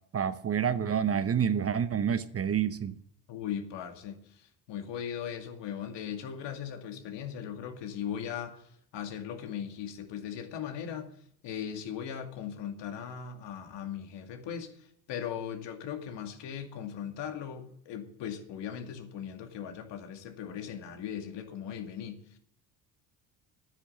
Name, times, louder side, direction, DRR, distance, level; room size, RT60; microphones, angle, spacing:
voice 1, 0.1-3.0, right 8 dB, 30° right, 0.8 m, -28 dB
voice 2, 3.3-8.6 8.9-11.2 11.4-22.4, left 8 dB, 65° left, 2.3 m, -38 dB
10.5 x 10.0 x 7.8 m
supercardioid pair, 85°, 46 cm